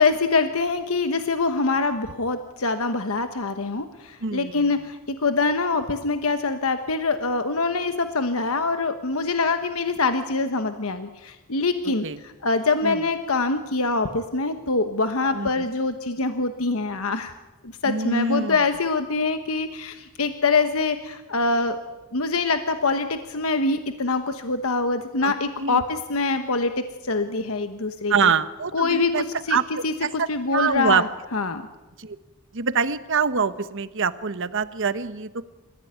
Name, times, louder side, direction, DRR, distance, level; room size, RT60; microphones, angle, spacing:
voice 1, 0.0-17.3 17.6-21.8 22.1-28.1 28.7-29.6 29.8-31.1 31.3-31.6, left 3 dB, 70° left, 8 dB, 1.2 m, -24 dB
voice 2, 4.2-4.7 12.0-12.2 12.8-13.0 15.3-15.7 17.9-18.6 25.2-25.3 25.6-25.8 28.1-29.2 29.5-30.3 30.5-31.0 32.0-32.2 32.5-35.4, right 5 dB, 60° right, 12 dB, 1.2 m, -25 dB
28.5 x 15.0 x 9.4 m, 1.1 s
head